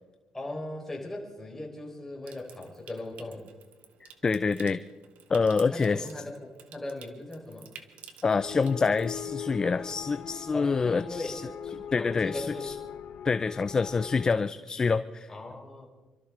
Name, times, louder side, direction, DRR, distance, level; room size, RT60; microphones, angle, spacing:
voice 1, 0.3-3.5 5.7-7.7 10.5-11.4 12.0-12.7 15.3-15.9, left 2 dB, 15° left, -1 dB, 4.4 m, -38 dB
Water tap faucet / Sink (filling or washing) / Trickle dribble, 2.2-9.2, right 8 dB, 75° right, 1.3 m, -53 dB
voice 2, 4.0-4.8 5.3-6.0 8.2-11.4 11.9-12.7 13.2-15.3, left 4 dB, 30° left, 12 dB, 0.5 m, -26 dB
sound 1, 8.3-14.3, left 9 dB, 75° left, 0.9 m, -40 dB
27.5 x 13.0 x 3.7 m, 1.2 s
cardioid pair, 100°, 2 cm